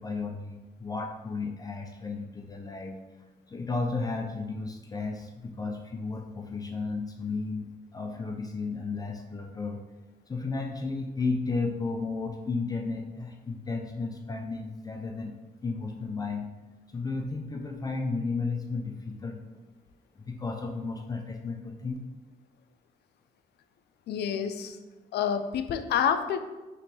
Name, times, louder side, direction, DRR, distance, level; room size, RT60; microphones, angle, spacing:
voice 1, 0.0-3.0 3.5-9.8 10.3-15.4 15.6-16.5 16.9-19.4 20.2-22.0, left 3 dB, 20° left, 2 dB, 0.4 m, -33 dB
voice 2, 24.1-24.8 25.1-26.4, left 8 dB, 85° left, 9 dB, 0.4 m, -28 dB
5.2 x 3.1 x 2.8 m, 1.2 s
cardioid pair, 135°, 17 cm